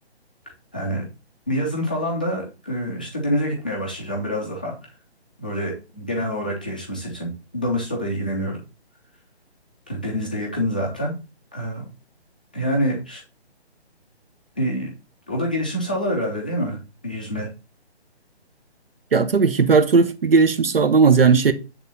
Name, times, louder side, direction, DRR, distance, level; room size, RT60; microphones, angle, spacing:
voice 1, 0.7-1.0 1.5-4.7 5.4-8.6 9.9-11.1 11.5-11.8 12.5-13.2 14.6-14.9 15.3-16.8 17.0-17.5, equal, 10° left, 0.6 m, -26 dB
voice 2, 19.1-21.5, right 5 dB, 60° right, 1.0 m, -16 dB
9.2 x 3.6 x 5.5 m
hypercardioid pair, 175°, 33 cm